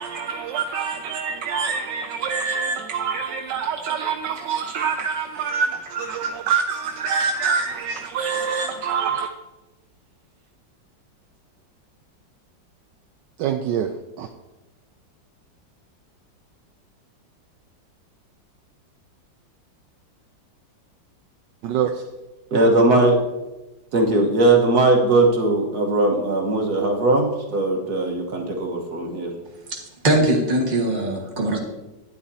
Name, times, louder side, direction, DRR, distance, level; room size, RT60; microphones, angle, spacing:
voice 1, 0.0-9.3 13.4-13.9 14.2-14.3 21.6-21.9, right 6 dB, 75° right, 1.2 m, -25 dB
voice 2, 22.5-23.2 23.9-29.3, right 2 dB, 60° right, 1.8 m, -19 dB
voice 3, 29.7-31.6, right 1 dB, 25° right, 1.6 m, -21 dB
12.0 x 9.6 x 2.8 m
omnidirectional pair, 2.0 m